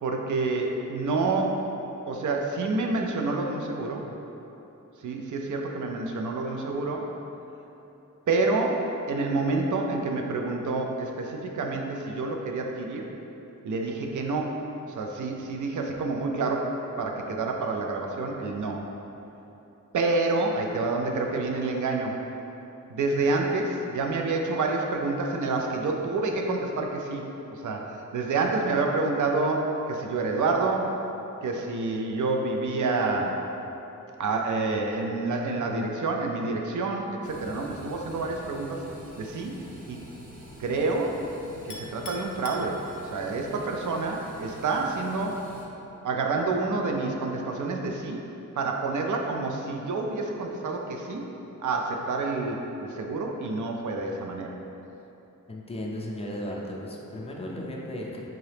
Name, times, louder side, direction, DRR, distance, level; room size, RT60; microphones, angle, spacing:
voice 1, 0.0-1.7 2.1-4.1 5.0-7.1 8.3-13.1 13.6-18.9 19.9-22.2 22.9-30.9 31.4-33.4 34.2-38.9 39.1-39.5 39.9-40.0 40.6-41.2 41.7-45.5 46.0-48.2 48.6-51.2 51.6-54.5, right 3 dB, 65° right, 1 dB, 0.5 m, -28 dB
sound 1, 37.2-45.6, right 1 dB, 25° right, 0.7 m, -46 dB
Chink clink, 41.7-43.4, left 3 dB, 70° left, 0.5 m, -43 dB
voice 2, 55.5-58.2, left 1 dB, 20° left, -2 dB, 0.4 m, -35 dB
3.6 x 2.8 x 3.3 m, 3.0 s
wide cardioid pair, 95°, 32 cm